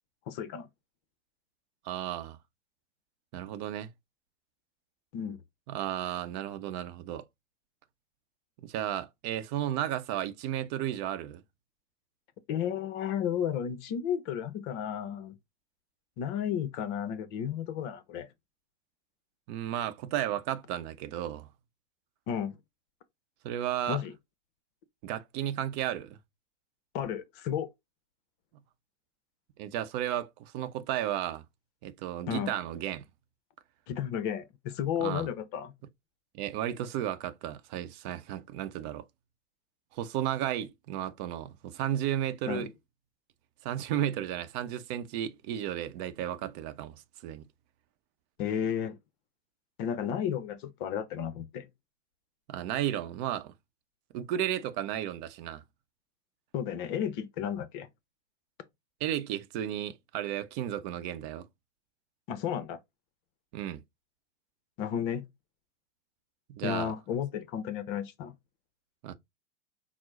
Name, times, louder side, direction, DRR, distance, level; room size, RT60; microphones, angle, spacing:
voice 1, 0.3-0.7 5.1-5.4 12.5-15.4 16.2-18.3 22.3-22.6 23.9-24.1 26.9-27.7 32.3-32.5 33.9-35.7 42.5-42.7 48.4-49.0 49.8-51.7 56.5-57.9 62.3-62.8 64.8-65.2 66.6-68.3, left 9 dB, 40° left, 0.7 m, -33 dB
voice 2, 1.8-2.4 3.3-3.9 5.7-7.3 8.6-11.4 19.5-21.5 23.4-24.0 25.0-26.2 29.6-31.4 31.8-33.0 35.0-35.3 36.3-39.1 39.9-42.7 43.6-47.4 52.5-53.5 54.1-55.6 59.0-61.5 63.5-63.8 66.5-66.9 69.0-69.1, right 11 dB, 40° right, 0.7 m, -33 dB
6.0 x 2.0 x 3.7 m
hypercardioid pair, 105°, 36 cm